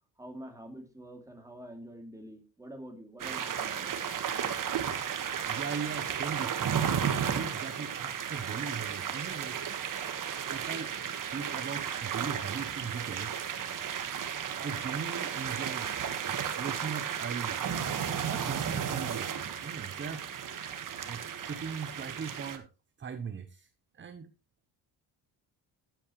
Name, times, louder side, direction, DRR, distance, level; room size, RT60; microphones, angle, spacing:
voice 1, 0.2-3.9, equal, 10° right, 3 dB, 2.8 m, -46 dB
sound 1, 3.2-22.6, right 8 dB, 45° right, 1.6 m, -34 dB
voice 2, 5.5-9.9 10.5-13.4 14.6-15.9 16.2-17.6 18.2-20.3 21.1-22.7 23.0-23.7 23.9-24.3, right 6 dB, 25° right, 10 dB, 0.8 m, -40 dB
13.0 x 9.1 x 3.1 m, 0.30 s
cardioid pair, 120°, 43 cm